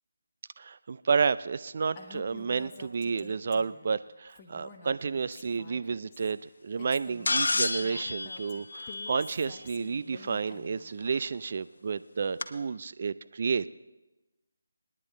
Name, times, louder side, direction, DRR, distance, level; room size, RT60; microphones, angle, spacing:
voice 1, 0.6-13.7, right 5 dB, 45° right, 14 dB, 0.4 m, -31 dB
Female speech woman speaking, 2.0-3.9 4.3-6.3 6.8-10.9, left 5 dB, 25° left, 1.1 m, -49 dB
sound 1, 7.3-9.6 11.1-11.2 12.4-12.5, left 3 dB, 65° left, 0.9 m, -30 dB
28.5 x 9.9 x 3.2 m, 1.1 s
figure-of-eight pair, 160°, 0 cm